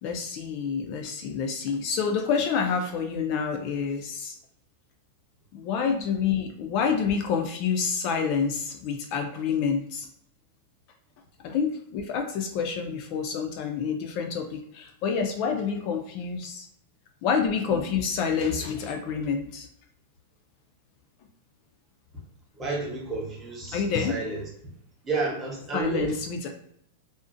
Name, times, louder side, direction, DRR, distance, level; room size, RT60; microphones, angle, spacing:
voice 1, 0.0-4.4 5.5-10.1 11.4-16.7 17.2-19.7 23.7-24.2 25.7-26.5, left 6 dB, 45° left, 4 dB, 0.3 m, -28 dB
voice 2, 22.6-24.4 25.0-26.1, right 3 dB, 15° right, -4 dB, 0.8 m, -31 dB
2.4 x 2.0 x 2.5 m, 0.72 s
supercardioid pair, 150°, 0 cm